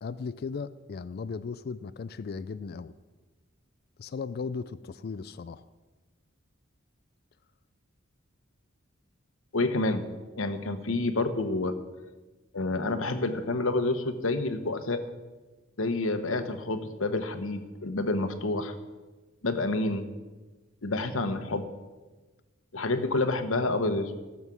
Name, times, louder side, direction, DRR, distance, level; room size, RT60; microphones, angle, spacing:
voice 1, 0.0-2.9 4.0-5.7, left 5 dB, 50° left, 15 dB, 0.4 m, -36 dB
voice 2, 9.5-10.0 10.4-11.7 12.5-15.0 15.8-18.7 19.4-20.0 20.8-21.7 22.7-24.1, left 2 dB, 80° left, 9 dB, 1.0 m, -28 dB
14.5 x 7.3 x 6.1 m, 1.2 s
head